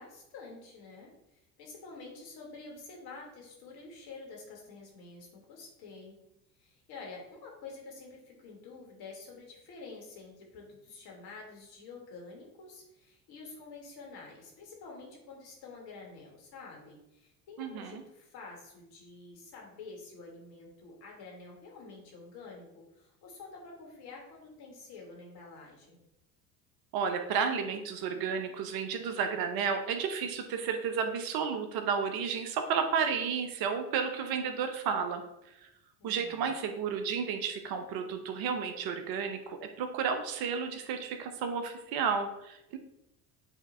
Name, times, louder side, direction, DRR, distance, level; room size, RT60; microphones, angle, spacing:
voice 1, 0.0-6.2 6.6-26.0 36.0-36.6, left 3 dB, 55° left, -1 dB, 2.6 m, -48 dB
voice 2, 17.6-18.0 26.9-35.2 35.6-35.7 36.0-42.8, right 6 dB, 55° right, 7 dB, 1.0 m, -32 dB
8.1 x 3.7 x 4.3 m, 0.85 s
hypercardioid pair, 65°, 45 cm